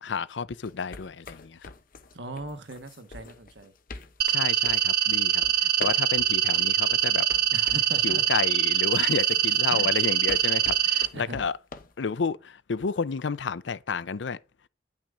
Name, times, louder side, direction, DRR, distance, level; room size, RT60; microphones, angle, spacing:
voice 1, 0.0-1.7 4.3-7.3 8.0-11.6 12.0-14.4, left 5 dB, 80° left, 0.6 m, -31 dB
sound 1, 0.6-8.3 8.9-11.9, left 3 dB, 50° left, 0.9 m, -45 dB
voice 2, 2.1-3.7 7.5-8.2 9.7-9.9 11.1-11.4, right 2 dB, 75° right, 1.4 m, -39 dB
sound 2, 4.2-11.1, right 10 dB, 55° right, 0.5 m, -24 dB
10.0 x 5.9 x 3.8 m
head